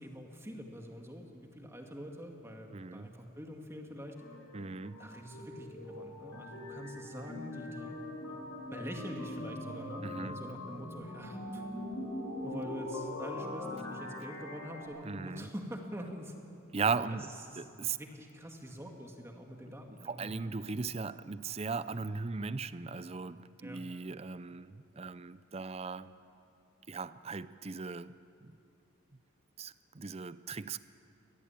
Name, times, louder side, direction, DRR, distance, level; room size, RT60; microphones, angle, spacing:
voice 1, 0.0-4.2 5.0-7.9 8.3-8.4 8.7-11.6 12.4-16.4 17.1-17.6 17.9-20.5 23.6-23.8, equal, 10° right, 2 dB, 2.1 m, -45 dB
voice 2, 2.7-3.1 4.5-5.0 10.0-10.4 15.0-15.5 16.7-18.0 19.9-26.1 26.9-28.1 28.4-28.6 29.6-30.8, right 4 dB, 30° right, 15 dB, 0.5 m, -38 dB
sound 1, 4.2-14.8, left 1 dB, 85° left, 6.9 m, -42 dB
23.5 x 18.0 x 8.9 m, 2.8 s
head